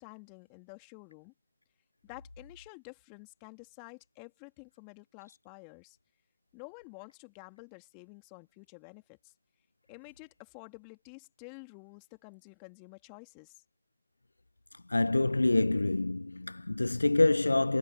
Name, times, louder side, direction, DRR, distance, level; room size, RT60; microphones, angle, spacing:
voice 1, 0.0-1.3 2.0-6.0 6.5-9.3 9.9-13.6, left 39 dB, 20° left, 2.7 m, -50 dB
voice 2, 14.9-17.8, left 2 dB, 80° left, 0.4 m, -26 dB
figure-of-eight pair, 140°, 0 cm